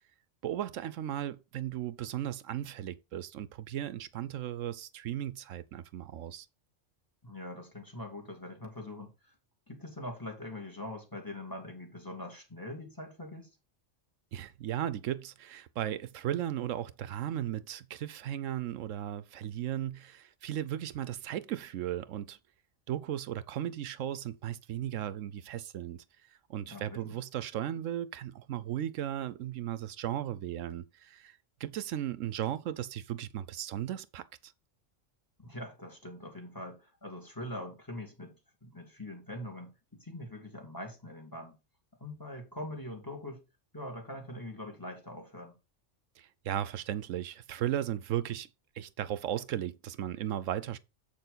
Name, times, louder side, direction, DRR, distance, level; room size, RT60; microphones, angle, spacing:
voice 1, 0.4-6.5 14.3-22.4 22.9-26.0 26.5-34.5 46.2-48.5 48.7-50.8, right 11 dB, 85° right, 1.0 m, -36 dB
voice 2, 7.2-9.3 9.7-13.5 26.7-27.2 35.4-38.3 38.6-41.6 42.0-43.4 43.7-45.6, left 1 dB, 15° left, 2.6 m, -43 dB
7.9 x 6.7 x 4.0 m
omnidirectional pair, 1.3 m